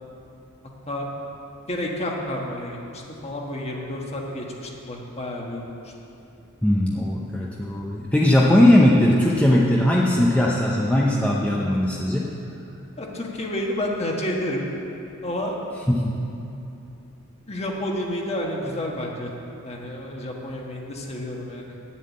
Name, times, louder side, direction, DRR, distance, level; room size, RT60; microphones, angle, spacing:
voice 1, 1.7-5.9 13.0-14.6 15.2-15.6 17.5-19.3 19.6-21.8, left 1 dB, 30° left, -1 dB, 1.3 m, -30 dB
voice 2, 6.6-12.3 15.9-16.2, left 1 dB, 5° left, -4 dB, 0.6 m, -19 dB
9.3 x 7.5 x 8.4 m, 2.8 s
head